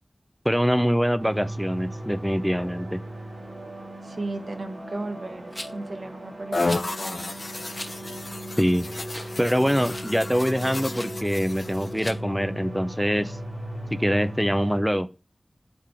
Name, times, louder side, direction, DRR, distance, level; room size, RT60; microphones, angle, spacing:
voice 1, 0.4-3.0 8.6-8.9 9.4-13.4 14.0-15.1, equal, ahead, 0.5 m, -24 dB
sound 1, 1.2-14.8, right 1 dB, 50° right, 2.1 m, -37 dB
voice 2, 4.0-7.3, right 2 dB, 70° right, 1.2 m, -35 dB
Rattle, 5.5-5.9 6.6-6.9 7.7-7.9 8.4-8.5 9.1-9.4 9.7-10.1 10.9-11.1 11.9-12.2, left 1 dB, 25° left, 1.1 m, -38 dB
sound 2, 6.5-11.9, left 2 dB, 55° left, 0.6 m, -32 dB
8.5 x 3.6 x 4.4 m
wide cardioid pair, 65°, 0 cm